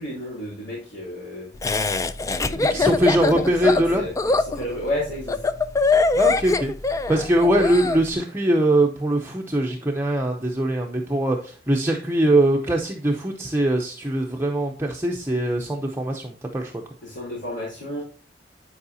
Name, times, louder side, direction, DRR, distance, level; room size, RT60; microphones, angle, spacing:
voice 1, 0.0-1.5 2.4-4.1 4.5-5.4 17.0-18.0, left 1 dB, 75° left, -8 dB, 3.4 m, -32 dB
Laughter, 1.6-8.0, left 3 dB, 15° left, 0.3 m, -22 dB
voice 2, 2.6-4.0 6.1-16.7, right 1 dB, 15° right, 0 dB, 0.6 m, -22 dB
9.6 x 4.8 x 2.7 m, 0.40 s
head